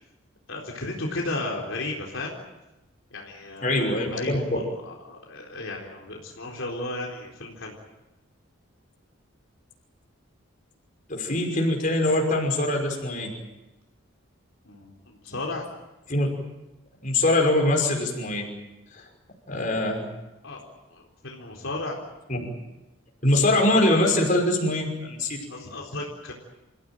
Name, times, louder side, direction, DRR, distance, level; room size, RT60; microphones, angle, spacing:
voice 1, 0.5-2.4 3.1-3.8 4.1-7.7 14.7-15.7 20.4-20.6 20.9-22.0 25.5-26.3, left 2 dB, 70° left, -1 dB, 4.1 m, -34 dB
voice 2, 3.6-4.4 11.1-13.3 16.1-16.3 17.0-18.5 18.9-19.0 19.5-20.0 22.3-22.4 23.2-25.4, left 1 dB, 40° left, 1 dB, 5.6 m, -23 dB
28.5 x 16.0 x 9.1 m, 1.0 s
head